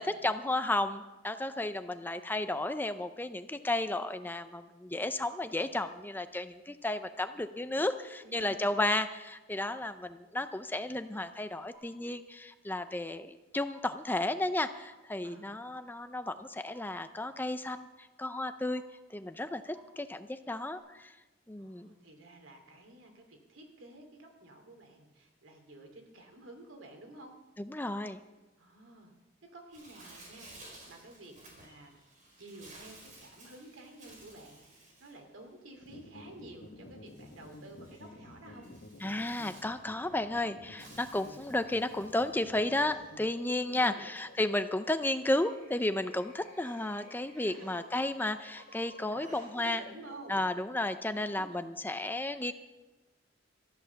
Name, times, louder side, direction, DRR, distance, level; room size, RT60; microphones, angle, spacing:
voice 1, 0.0-17.9 18.2-18.8 19.1-21.2 21.5-21.9 27.6-28.2 39.0-49.8 50.3-52.5, left 2 dB, 10° left, 10 dB, 0.5 m, -33 dB
voice 2, 8.2-8.7 15.2-15.5 21.6-27.4 28.6-29.1 29.4-32.0 32.4-38.7 43.7-44.1 47.3-47.6 49.1-49.3 49.5-50.5 51.1-51.6 52.2-52.5, right 2 dB, 85° right, 3 dB, 2.8 m, -51 dB
sound 1, 11.7-11.8 12.7-12.8 13.7-13.8 14.7-14.8 15.7-15.8 16.7-16.8 17.7-17.8 18.7-18.8 19.7-19.8 20.7-20.8, right 4 dB, 20° right, 5.3 m, -56 dB
Bird, 29.7-49.6, right 2 dB, 40° right, 4.7 m, -57 dB
sound 2, 35.8-50.6, left 2 dB, 85° left, 1.9 m, -53 dB
14.0 x 11.0 x 7.1 m, 1.1 s
head